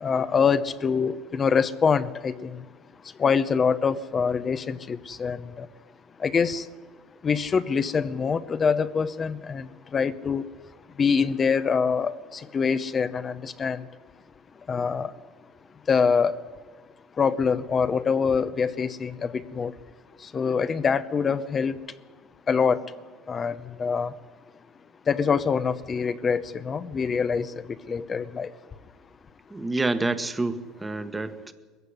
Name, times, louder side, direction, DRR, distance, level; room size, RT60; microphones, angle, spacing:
voice 1, 0.0-2.6 3.2-5.7 6.2-6.6 7.2-9.7 9.9-10.4 11.0-13.8 14.7-15.1 15.9-16.4 17.2-19.7 20.3-21.8 22.5-22.8 23.3-24.1 25.1-27.5 27.9-28.5, left 6 dB, 35° left, 12 dB, 0.9 m, -24 dB
voice 2, 29.5-31.5, right 2 dB, 15° right, 10 dB, 1.4 m, -28 dB
21.0 x 15.0 x 9.8 m, 1.4 s
supercardioid pair, 100°, 0 cm